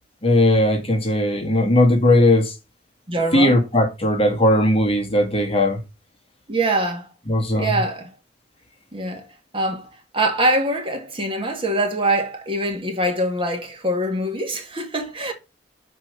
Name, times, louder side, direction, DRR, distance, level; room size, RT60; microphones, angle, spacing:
voice 1, 0.2-2.5 3.3-5.8 7.3-7.8, left 1 dB, 35° left, 1.8 m, -18 dB
voice 2, 3.1-3.6 6.5-7.1 7.6-8.1 8.9-9.3 9.5-9.9 10.1-15.3, right 1 dB, 30° right, 1.8 m, -23 dB
6.0 x 4.6 x 6.5 m
head